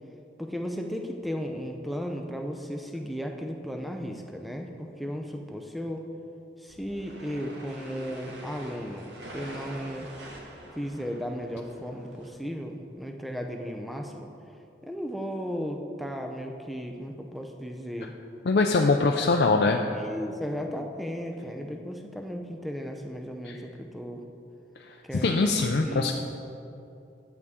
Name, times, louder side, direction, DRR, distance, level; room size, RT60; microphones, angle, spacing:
voice 1, 0.4-6.0 6.6-10.1 10.7-14.3 14.8-18.1 19.9-24.2 25.0-26.1, equal, ahead, 2 dB, 0.5 m, -35 dB
sound 1, 6.7-12.3, right 1 dB, 85° right, 1.4 m, -45 dB
voice 2, 18.5-19.8 23.4-23.6 24.9-26.1, left 3 dB, 65° left, 2 dB, 0.4 m, -23 dB
11.0 x 8.1 x 3.6 m, 2.7 s
head